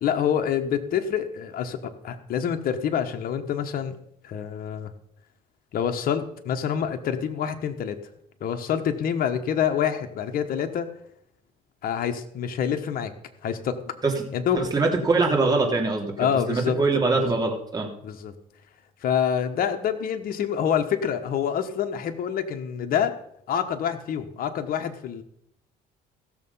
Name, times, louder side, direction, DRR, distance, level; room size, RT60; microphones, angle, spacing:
voice 1, 0.0-4.0 4.2-4.9 5.7-8.0 8.4-10.9 11.8-13.1 13.4-13.9 14.3-14.7 16.2-16.8 17.1-17.4 18.0-18.3 19.0-23.1 23.5-25.2, left 8 dB, 60° left, 6 dB, 1.2 m, -26 dB
voice 2, 14.6-17.9, right 3 dB, 25° right, 0 dB, 2.9 m, -23 dB
15.5 x 6.8 x 5.6 m, 0.72 s
cardioid pair, 110°, 17 cm